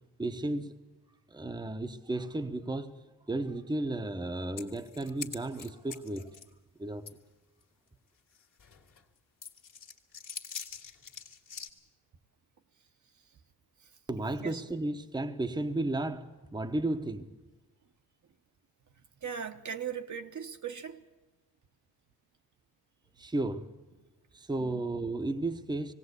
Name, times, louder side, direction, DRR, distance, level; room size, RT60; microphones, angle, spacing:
voice 1, 0.2-0.7 1.3-3.0 3.3-6.3 6.8-7.1 14.1-17.3 23.2-23.7 24.3-25.9, right 2 dB, 10° right, 0.9 m, -33 dB
sound 1, 4.6-6.5 7.1-7.2 7.6-7.7 8.4-9.0 9.4-11.7, left 6 dB, 50° left, 2.0 m, -44 dB
voice 2, 19.2-21.0 24.6-24.9, right 7 dB, 50° right, 1.1 m, -39 dB
19.5 x 17.0 x 8.1 m
cardioid pair, 95°, 39 cm